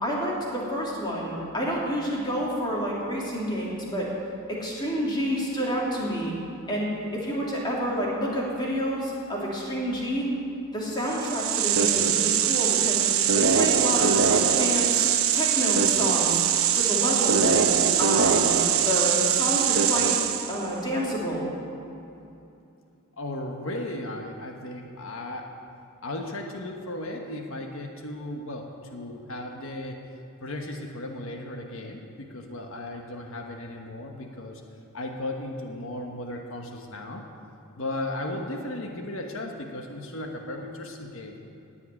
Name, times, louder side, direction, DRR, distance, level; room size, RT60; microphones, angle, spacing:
voice 1, 0.0-4.1 4.5-6.3 6.7-10.3 10.7-13.0 13.3-15.1 15.3-16.4 16.7-17.6 18.0-18.6 18.8-20.1 20.5-21.5, equal, 20° left, -4 dB, 2.9 m, -29 dB
sound 1, 11.1-20.7, right 8 dB, 75° right, 0.9 m, -22 dB
voice 2, 23.2-25.5 26.0-30.0 30.4-34.6 34.9-37.2 37.7-41.4, left 1 dB, 65° left, 2 dB, 1.3 m, -35 dB
17.0 x 5.8 x 9.6 m, 2.7 s
head